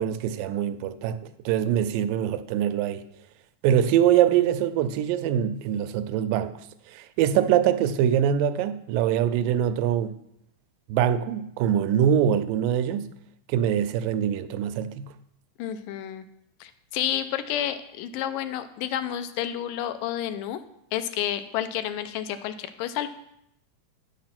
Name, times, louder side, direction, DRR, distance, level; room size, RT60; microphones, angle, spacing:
voice 1, 0.0-3.0 3.6-6.5 6.9-10.2 10.9-13.1 13.5-15.1, right 10 dB, 85° right, 2.3 m, -23 dB
voice 2, 15.6-16.3 16.6-20.6 20.9-23.1, left 11 dB, 85° left, 2.3 m, -30 dB
9.4 x 6.8 x 5.9 m
omnidirectional pair, 3.9 m